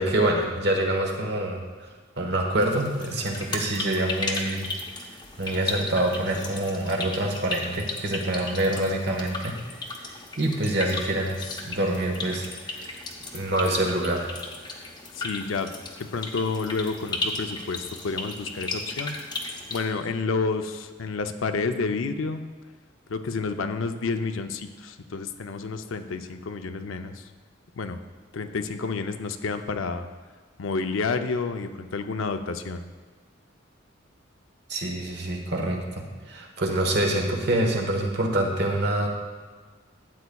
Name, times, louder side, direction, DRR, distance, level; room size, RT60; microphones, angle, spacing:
voice 1, 0.0-1.6 2.2-4.7 5.4-9.5 10.1-12.5 13.3-14.4 34.7-39.1, right 1 dB, 55° right, 1 dB, 1.2 m, -26 dB
sound 1, 2.6-19.9, left 3 dB, 20° left, 0.7 m, -35 dB
voice 2, 15.2-15.7 16.0-19.2 19.7-22.4 23.1-27.2 27.8-28.0 28.3-30.1 30.6-32.8, left 4 dB, 75° left, 8 dB, 0.5 m, -30 dB
12.5 x 8.3 x 2.3 m, 1.4 s
head